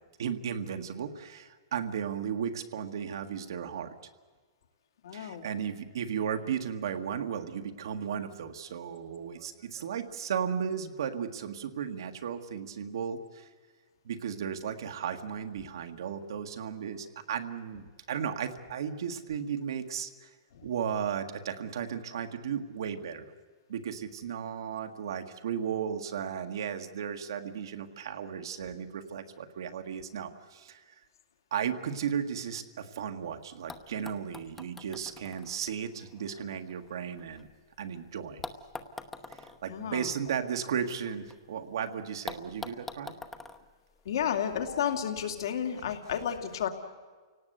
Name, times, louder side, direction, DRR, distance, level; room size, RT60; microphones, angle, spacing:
voice 1, 0.2-3.9 5.1-13.5 14.0-20.3 20.6-23.3 23.7-30.9 31.5-37.5 37.8-38.4 39.3-43.2, right 8 dB, 70° right, 6 dB, 1.8 m, -35 dB
voice 2, 5.0-5.4 20.5-20.7 39.7-40.1 44.0-46.7, left 9 dB, 70° left, 5 dB, 2.5 m, -32 dB
sound 1, 33.2-33.3 33.7-37.8 38.4-41.4 41.7-41.8 42.3-44.6 45.6-45.7, left 3 dB, 5° left, 0.9 m, -46 dB
29.0 x 18.0 x 8.1 m, 1.4 s
hypercardioid pair, 165°, 2 cm